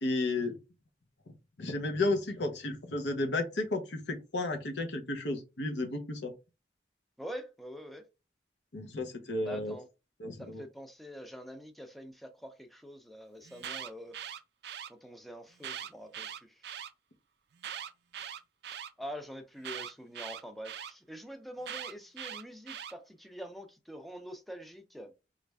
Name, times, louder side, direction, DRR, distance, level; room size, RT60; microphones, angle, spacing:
voice 1, 0.0-0.6 1.6-6.3 8.7-9.7 10.2-10.6, left 2 dB, 75° left, 0.8 m, -33 dB
voice 2, 7.2-8.0 9.4-9.9 10.4-14.2 14.9-16.6 19.0-25.1, equal, ahead, 0.4 m, -45 dB
Alarm, 13.4-14.9 15.6-16.9 17.6-18.9 19.6-20.9 21.6-22.9, right 9 dB, 65° right, 0.4 m, -41 dB
3.1 x 2.5 x 3.3 m
head